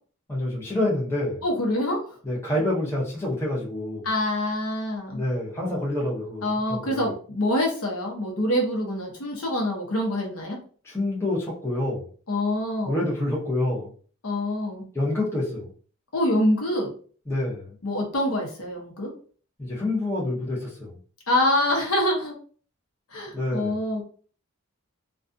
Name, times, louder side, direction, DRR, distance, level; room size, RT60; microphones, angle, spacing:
voice 1, 0.3-1.4 2.2-4.1 5.1-7.1 10.8-12.0 12.8-13.9 14.9-15.7 17.3-17.7 19.6-20.9 23.3-23.7, left 1 dB, 10° left, -5 dB, 0.7 m, -27 dB
voice 2, 1.4-2.2 4.0-5.2 6.4-10.6 12.3-13.0 14.2-14.9 16.1-16.9 17.8-19.1 21.3-22.3 23.1-24.0, left 1 dB, 75° left, 0 dB, 0.7 m, -25 dB
2.4 x 2.3 x 2.5 m, 0.44 s
head